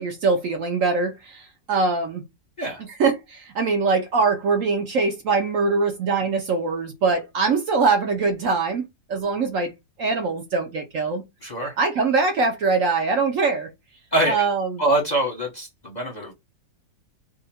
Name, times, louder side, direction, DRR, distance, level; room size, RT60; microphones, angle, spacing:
voice 1, 0.0-2.2 2.8-8.8 9.1-9.7 10.0-11.2 11.8-13.7 14.3-14.8, right 4 dB, 65° right, 0.9 m, -23 dB
voice 2, 11.4-11.7 14.1-14.5 14.8-16.3, right 1 dB, 35° left, 0.8 m, -24 dB
2.8 x 2.5 x 4.1 m
omnidirectional pair, 1.7 m